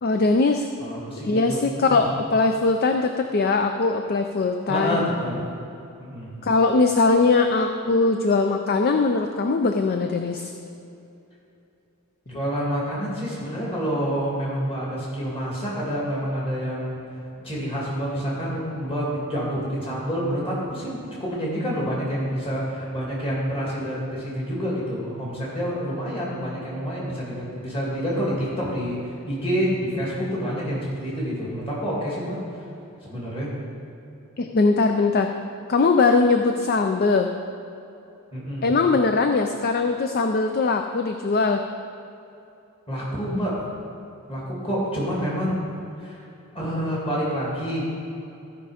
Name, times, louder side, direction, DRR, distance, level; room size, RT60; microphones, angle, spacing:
voice 1, 0.0-0.7 1.2-5.0 6.4-10.5 34.4-35.3 35.7-37.3 38.6-41.6, left 3 dB, 45° left, 5 dB, 0.4 m, -21 dB
voice 2, 0.8-2.0 4.7-5.4 6.0-6.3 12.3-17.0 17.4-32.6 33.1-33.5 38.3-38.7 42.9-43.6 44.3-45.6 46.0-46.3 46.5-47.8, equal, 25° left, -6 dB, 2.4 m, -28 dB
14.5 x 5.3 x 5.0 m, 2.8 s
head